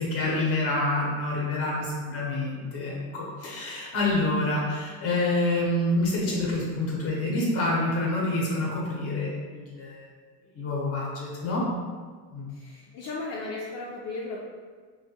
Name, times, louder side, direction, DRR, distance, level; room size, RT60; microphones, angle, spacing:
voice 1, 0.0-10.0 10.5-11.6 12.3-12.5, left 2 dB, 35° left, -4 dB, 0.9 m, -27 dB
voice 2, 12.5-14.4, left 3 dB, 60° left, -4 dB, 0.5 m, -35 dB
3.2 x 2.3 x 2.8 m, 1.5 s
cardioid pair, 145°, 42 cm